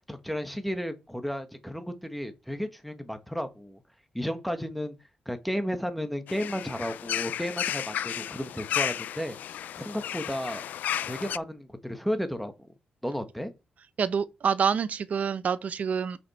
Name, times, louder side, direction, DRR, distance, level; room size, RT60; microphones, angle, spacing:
voice 1, 0.1-3.8 4.1-4.9 5.2-10.6 11.0-12.7 13.0-13.5, equal, ahead, 1.3 m, -33 dB
sound 1, 6.3-11.4, left 10 dB, 80° left, 0.3 m, -33 dB
voice 2, 14.0-16.2, right 7 dB, 60° right, 0.7 m, -27 dB
7.0 x 6.1 x 4.2 m
cardioid pair, 80°, 3 cm